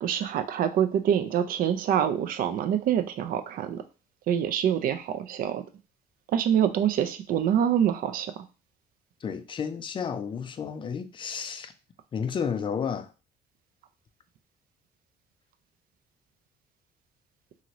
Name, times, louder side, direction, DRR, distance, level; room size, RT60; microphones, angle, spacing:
voice 1, 0.0-3.8 4.3-5.6 6.3-8.4, right 9 dB, 55° right, 0.4 m, -25 dB
voice 2, 9.2-11.7 12.1-13.1, left 7 dB, 30° left, 0.4 m, -32 dB
2.8 x 2.5 x 2.9 m
cardioid pair, 110°, 17 cm